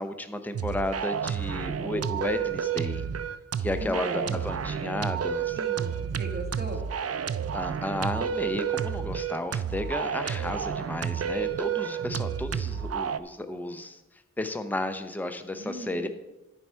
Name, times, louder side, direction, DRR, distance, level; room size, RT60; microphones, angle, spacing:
voice 1, 0.0-3.0 3.6-5.6 7.5-14.0 14.4-16.1, left 1 dB, 5° left, 8 dB, 0.6 m, -33 dB
sound 1, 0.5-13.2, right 8 dB, 55° right, 0.4 m, -30 dB
voice 2, 3.7-4.4 5.5-6.8 15.5-16.1, right 1 dB, 35° right, 0 dB, 1.7 m, -38 dB
13.5 x 4.9 x 4.5 m, 1.0 s
wide cardioid pair, 80°, 30 cm